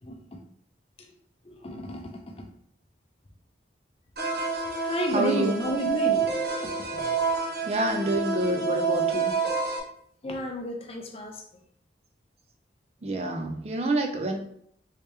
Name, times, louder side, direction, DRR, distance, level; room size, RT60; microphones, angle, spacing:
voice 1, 0.0-0.4 1.5-2.1 4.8-6.3 6.6-6.7 10.2-11.3, left 1 dB, 30° left, 3 dB, 0.5 m, -31 dB
sound 1, 4.2-9.8, right 5 dB, 55° right, 0.7 m, -28 dB
voice 2, 5.1-5.6 7.6-9.3 13.0-14.4, right 2 dB, 35° right, 4 dB, 0.4 m, -27 dB
3.2 x 2.9 x 3.3 m, 0.66 s
head